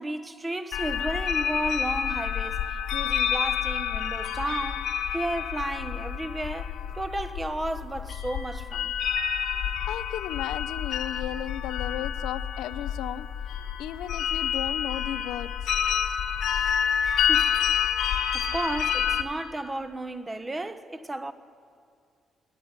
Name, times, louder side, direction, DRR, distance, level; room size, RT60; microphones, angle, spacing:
voice 1, 0.0-9.0 11.4-11.5 16.5-17.6 18.0-21.3, right 1 dB, 20° right, 1.2 m, -34 dB
sound 1, 0.7-19.2, left 8 dB, 70° left, 1.5 m, -28 dB
Piano, 9.2-10.6, right 7 dB, 90° right, 1.3 m, -43 dB
voice 2, 9.9-13.3 13.8-15.7, left 12 dB, 90° left, 0.7 m, -35 dB
23.0 x 18.5 x 9.7 m
cardioid pair, 90°, 0 cm